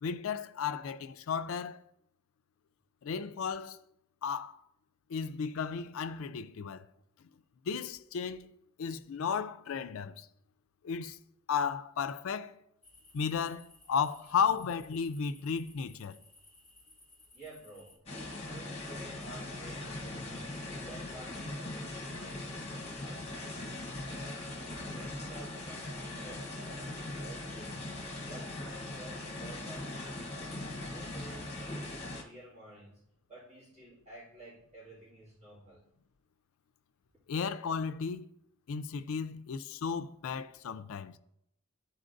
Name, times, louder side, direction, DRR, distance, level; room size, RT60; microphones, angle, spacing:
voice 1, 0.0-1.8 3.0-3.8 4.2-4.6 5.1-6.9 7.7-8.5 8.8-10.3 10.8-11.2 11.5-12.5 13.1-16.2 37.3-38.3 38.7-41.2, left 6 dB, 80° left, 0.4 m, -34 dB
sound 1, 12.8-18.0, left 2 dB, 5° left, 1.8 m, -60 dB
voice 2, 17.3-22.7 23.0-23.7 24.1-24.5 24.9-30.6 30.9-33.0 33.3-35.9, right 1 dB, 30° right, 2.1 m, -52 dB
sound 2, 18.1-32.2, left 2 dB, 30° left, 1.0 m, -40 dB
12.0 x 4.1 x 2.6 m
head